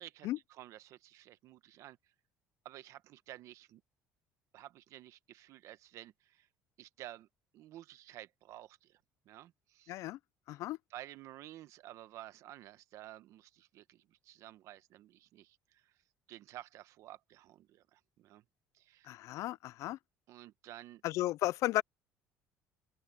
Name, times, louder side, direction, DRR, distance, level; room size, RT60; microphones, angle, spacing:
voice 1, 0.0-2.0 2.6-3.8 4.5-6.5 6.8-7.3 7.5-9.0 9.2-9.9 10.5-10.6 10.9-15.9 16.3-18.4 18.7-19.1 20.3-21.0, right 14 dB, 60° right, 1.0 m, -52 dB
voice 2, 9.9-10.2 10.5-10.8 19.1-20.0 21.0-21.8, left 16 dB, 60° left, 0.4 m, -34 dB
open air
cardioid pair, 145°, 6 cm